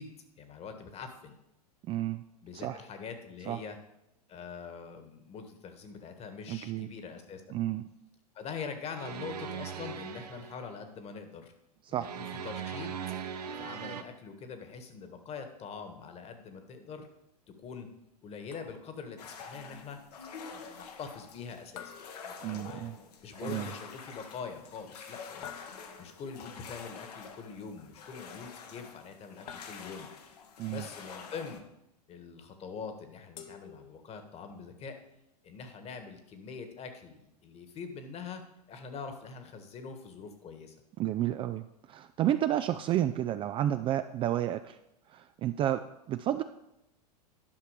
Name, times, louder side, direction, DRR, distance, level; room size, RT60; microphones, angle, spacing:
voice 1, 0.0-1.4 2.4-3.8 4.3-7.6 8.3-11.5 11.9-13.0 13.6-17.1 17.6-17.9 18.2-20.0 20.5-22.9 23.2-25.5 26.0-30.1 30.7-31.7 32.1-35.0 35.4-38.4 38.7-40.7, left 5 dB, 30° left, 7 dB, 1.4 m, -44 dB
voice 2, 1.9-2.2 2.5-2.8 3.5-3.6 6.5-6.9 7.5-7.9 11.9-12.2 22.4-23.0 23.4-23.7 30.6-30.8 41.0-44.8 45.1-45.8 46.1-46.4, right 12 dB, 25° right, 10 dB, 0.3 m, -31 dB
sound 1, 9.0-10.6 12.0-14.0, right 7 dB, 75° right, 0.9 m, -39 dB
sound 2, 18.5-19.1 21.8-23.0 25.4-26.3 29.5-30.3 33.4-34.4, left 8 dB, 55° left, 1.1 m, -50 dB
sound 3, 19.2-31.6, left 6 dB, 70° left, 1.3 m, -47 dB
11.0 x 5.7 x 5.0 m, 0.85 s
hypercardioid pair, 100°, 21 cm